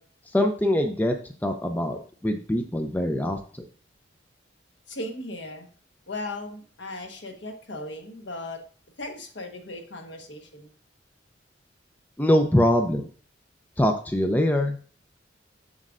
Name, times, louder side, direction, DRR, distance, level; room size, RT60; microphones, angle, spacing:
voice 1, 0.3-1.2 1.4-3.6 12.2-13.0 13.8-14.8, left 1 dB, 10° left, 5 dB, 0.5 m, -23 dB
voice 2, 4.9-5.7 6.1-8.6 9.0-10.7, left 2 dB, 65° left, 3 dB, 1.3 m, -37 dB
7.3 x 6.5 x 2.5 m, 0.42 s
head